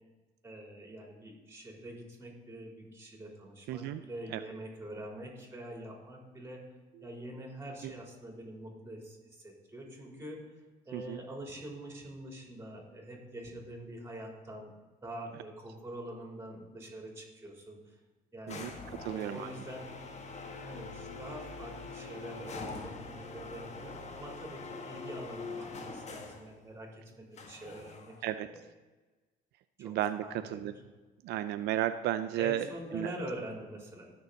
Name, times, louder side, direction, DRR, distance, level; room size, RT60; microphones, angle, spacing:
voice 1, 0.4-6.6 7.0-10.4 10.9-14.7 15.0-17.8 18.3-18.7 19.1-19.9 20.6-28.6 29.8-30.7 32.4-34.1, right 1 dB, 15° right, -1 dB, 3.9 m, -45 dB
voice 2, 3.7-4.0 4.3-4.4 7.8-7.9 10.9-11.2 18.5-18.7 19.0-19.5 28.2-28.5 29.8-30.7 31.2-32.7 32.9-33.1, right 12 dB, 80° right, 11 dB, 0.5 m, -33 dB
sound 1, 18.5-26.5 27.4-28.3, left 3 dB, 40° left, 1.6 m, -44 dB
19.0 x 6.8 x 4.1 m, 1.3 s
cardioid pair, 110°, 17 cm